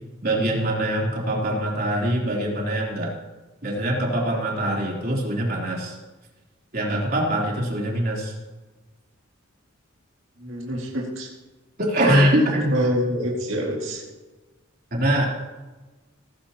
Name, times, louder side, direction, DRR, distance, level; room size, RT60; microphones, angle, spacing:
voice 1, 0.2-3.1 3.6-5.9 6.7-8.3 11.8-12.8 14.9-15.3, right 1 dB, 50° right, -2 dB, 3.4 m, -23 dB
voice 2, 10.4-11.3 12.1-14.0, equal, 70° right, -3 dB, 2.2 m, -27 dB
17.5 x 15.0 x 2.9 m, 1.2 s
head